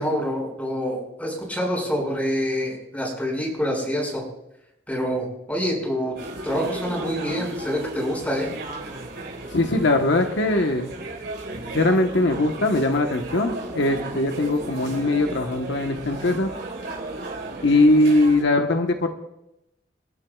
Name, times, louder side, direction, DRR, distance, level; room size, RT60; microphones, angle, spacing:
voice 1, 0.0-4.2 4.9-6.2 6.4-8.5, equal, 10° left, -2 dB, 5.9 m, -26 dB
sound 1, 6.2-18.4, right 2 dB, 65° right, 5.0 m, -35 dB
voice 2, 9.5-10.9 11.7-16.5 17.6-19.1, left 2 dB, 75° left, 4 dB, 1.2 m, -21 dB
29.0 x 12.0 x 2.4 m, 0.86 s
head